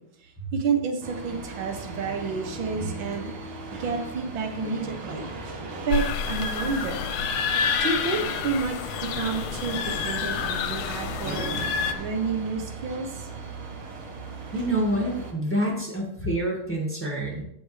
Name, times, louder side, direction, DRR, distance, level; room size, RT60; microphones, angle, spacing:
voice 1, 0.2-5.3 5.9-7.1 7.8-11.5 12.0-13.3, right 5 dB, 70° right, 4 dB, 1.9 m, -30 dB
sound 1, 1.0-15.3, right 3 dB, 90° right, 2.2 m, -38 dB
sound 2, 5.9-11.9, left 6 dB, 85° left, 1.5 m, -28 dB
voice 2, 14.5-17.4, right 1 dB, 5° left, -2 dB, 1.8 m, -27 dB
15.0 x 5.2 x 3.3 m, 0.73 s
omnidirectional pair, 2.3 m